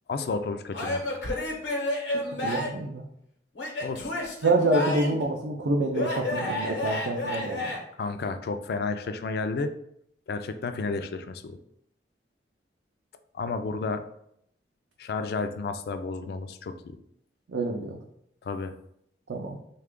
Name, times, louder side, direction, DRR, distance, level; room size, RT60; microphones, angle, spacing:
voice 1, 0.1-1.0 3.8-4.1 8.0-9.7 10.3-11.6 13.3-14.0 15.0-17.0 18.4-18.7, left 4 dB, 60° left, 9 dB, 0.3 m, -31 dB
Male speech man speaking / Yell / Laughter, 0.7-2.9 3.6-5.3 5.9-7.8, left 1 dB, 80° left, 0.9 m, -30 dB
voice 2, 2.4-3.0 4.4-7.7 17.5-18.0 19.3-19.6, right 2 dB, 75° right, 0 dB, 0.4 m, -27 dB
3.2 x 2.3 x 3.6 m, 0.72 s
head